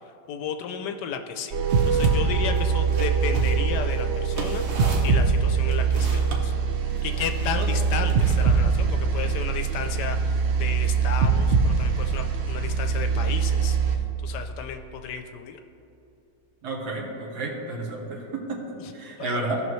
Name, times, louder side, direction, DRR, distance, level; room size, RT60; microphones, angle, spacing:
voice 1, 0.3-1.6 1.8-6.5 7.0-15.6 18.8-18.9 19.2-19.5, left 7 dB, 75° left, 6 dB, 1.1 m, -33 dB
sound 1, 1.5-14.0, right 5 dB, 85° right, 0.5 m, -23 dB
sound 2, 1.7-2.2 2.5-6.4 7.1-8.7, right 3 dB, 45° right, 1.0 m, -36 dB
voice 2, 16.6-18.2 18.5-18.6 18.9-19.6, right 2 dB, 65° right, -1 dB, 1.8 m, -31 dB
16.0 x 5.8 x 3.1 m, 2.9 s
omnidirectional pair, 1.9 m